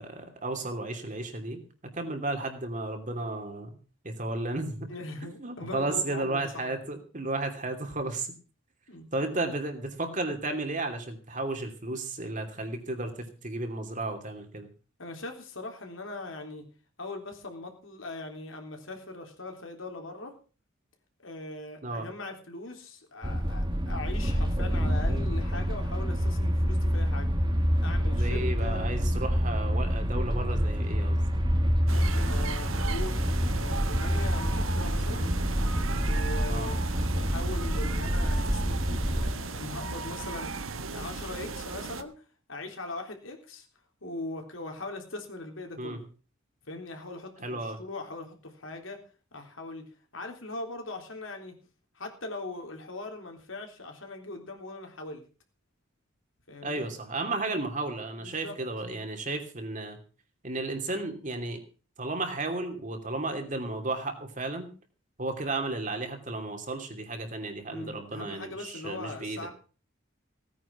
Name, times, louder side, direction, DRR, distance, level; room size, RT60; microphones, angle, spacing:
voice 1, 0.0-3.7 4.0-4.9 5.4-8.3 9.1-14.7 21.8-22.1 28.2-31.2 36.5-36.7 45.8-46.0 47.4-47.8 56.6-60.0 60.4-61.6 62.0-64.7 65.2-69.4, right 2 dB, 40° right, 5 dB, 2.9 m, -33 dB
voice 2, 4.9-7.0 8.9-9.1 9.4-9.5 15.0-16.7 17.0-20.3 21.2-27.3 27.8-28.9 31.9-35.3 36.0-43.7 44.0-46.0 46.7-49.0 49.3-49.8 50.1-51.6 51.9-55.2 56.5-56.9 58.2-58.6 67.7-69.5, left 2 dB, 75° left, 3 dB, 3.6 m, -40 dB
sound 1, 23.2-39.3, equal, 25° right, 1.7 m, -27 dB
sound 2, 31.9-42.0, right 4 dB, 85° right, 1.4 m, -36 dB
17.0 x 9.4 x 6.0 m, 0.37 s
head